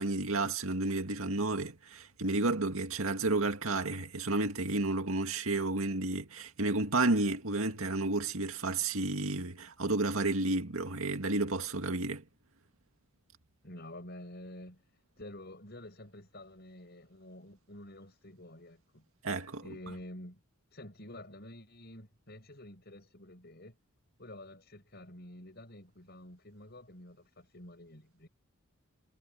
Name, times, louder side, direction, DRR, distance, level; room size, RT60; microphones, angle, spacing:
voice 1, 0.0-12.2 19.2-19.6, right 2 dB, 80° right, 2.1 m, -31 dB
voice 2, 13.6-14.8 15.2-19.0 19.6-20.4 20.7-23.8 24.2-28.3, left 1 dB, 50° left, 7.2 m, -49 dB
head